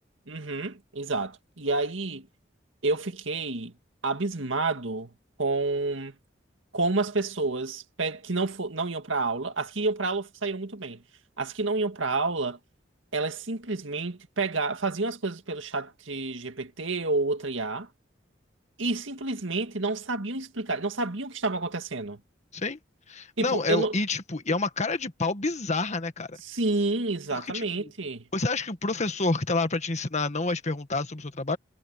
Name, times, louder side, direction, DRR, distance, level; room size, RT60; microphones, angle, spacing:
voice 1, 0.3-2.3 2.8-3.7 4.0-5.1 5.4-6.2 6.7-11.0 11.4-12.6 13.1-17.9 18.8-22.2 23.4-23.9 26.4-28.3, right 3 dB, 85° right, 2.0 m, -29 dB
voice 2, 23.1-26.4 27.3-27.9 28.3-31.6, left 3 dB, 40° left, 1.6 m, -28 dB
head